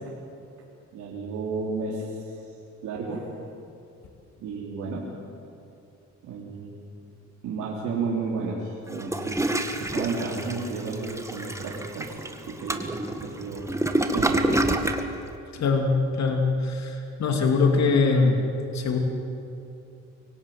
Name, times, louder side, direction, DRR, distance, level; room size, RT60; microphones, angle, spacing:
voice 1, 0.9-2.2 2.8-3.3 4.4-5.1 6.2-6.8 7.4-9.4 9.8-12.2 12.5-12.9 13.2-13.7 14.1-14.7, right 4 dB, 80° right, -5 dB, 3.5 m, -32 dB
Toilet flush, 8.9-15.1, right 1 dB, 10° right, 1.8 m, -27 dB
voice 2, 15.5-18.4 18.7-19.0, left 4 dB, 65° left, 3 dB, 2.8 m, -22 dB
24.0 x 17.0 x 9.4 m, 2.7 s
cardioid pair, 90°, 30 cm